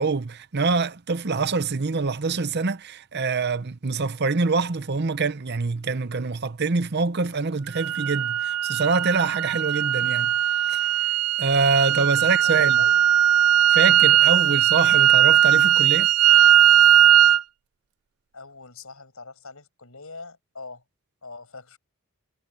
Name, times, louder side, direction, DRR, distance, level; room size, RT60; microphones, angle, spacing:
voice 1, 0.0-10.3 10.7-10.8 11.4-12.8 13.7-16.1, right 4 dB, 50° right, 0.8 m, -25 dB
sound 1, 7.7-17.4, right 11 dB, 75° right, 0.4 m, -18 dB
voice 2, 12.2-13.1 14.4-14.6 18.3-20.8 21.2-21.8, left 3 dB, 70° left, 6.2 m, -43 dB
head